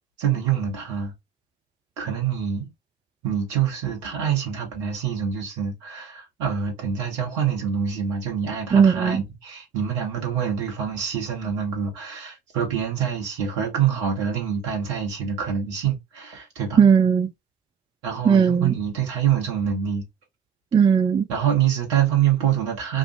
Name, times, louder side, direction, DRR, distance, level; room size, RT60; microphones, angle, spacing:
voice 1, 0.2-1.1 2.0-2.7 3.2-16.8 18.0-20.0 21.3-23.0, right 8 dB, 70° right, 1.6 m, -25 dB
voice 2, 8.7-9.2 16.8-17.3 18.3-18.7 20.7-21.3, right 7 dB, 15° right, 0.3 m, -17 dB
3.5 x 2.5 x 2.6 m
figure-of-eight pair, 55°, 34 cm